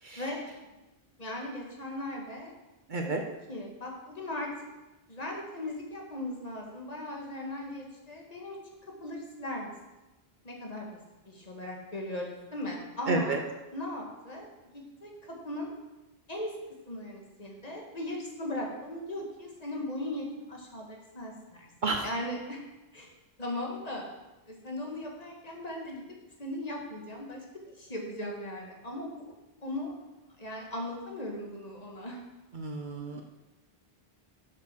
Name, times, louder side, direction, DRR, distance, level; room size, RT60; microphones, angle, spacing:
voice 1, 0.2-0.5 1.2-2.5 3.0-4.5 5.1-8.6 9.0-9.7 10.4-10.9 11.3-13.4 13.7-14.5 14.7-15.7 16.3-16.6 16.9-21.7 22.0-22.6 22.9-23.1 23.4-24.1 24.5-26.0 26.4-29.3 29.6-29.9 30.4-32.2, left 1 dB, 40° left, -1 dB, 1.8 m, -38 dB
voice 2, 2.9-3.2 13.1-13.4 21.8-22.1 32.5-33.2, right 3 dB, 55° right, 3 dB, 0.9 m, -31 dB
7.4 x 6.6 x 6.1 m, 1.1 s
omnidirectional pair, 1.0 m